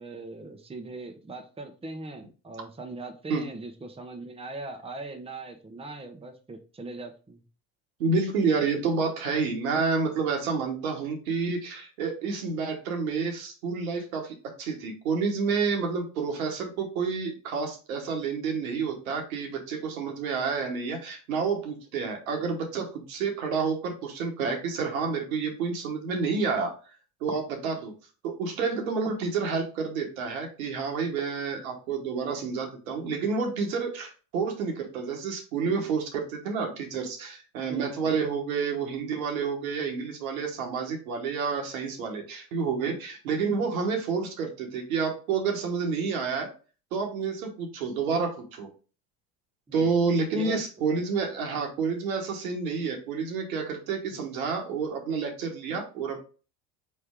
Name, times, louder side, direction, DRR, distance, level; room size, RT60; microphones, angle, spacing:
voice 1, 0.0-7.4 37.6-38.2 49.7-51.1 54.1-54.2, right 2 dB, 15° right, 4 dB, 0.9 m, -40 dB
voice 2, 8.0-26.7 27.2-27.9 28.2-46.5 46.9-48.7 49.7-56.2, right 5 dB, 85° right, 2 dB, 1.3 m, -29 dB
4.5 x 3.3 x 3.5 m, 0.35 s
hypercardioid pair, 75°, 41 cm